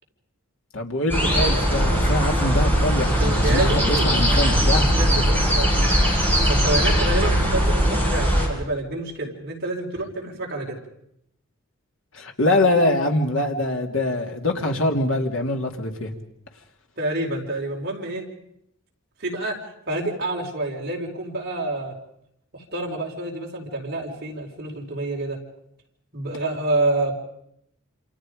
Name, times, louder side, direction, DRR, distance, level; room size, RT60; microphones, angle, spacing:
voice 1, 0.7-4.9 12.1-16.1, left 1 dB, 60° left, 3 dB, 2.7 m, -23 dB
sound 1, 1.1-8.5, equal, 10° left, 6.2 m, -20 dB
voice 2, 3.2-4.0 4.7-5.9 6.4-10.8 17.0-18.2 19.2-19.6 19.9-21.9 22.5-25.4 26.1-27.1, right 2 dB, 45° right, -1 dB, 4.8 m, -28 dB
28.0 x 27.5 x 5.2 m, 0.75 s
head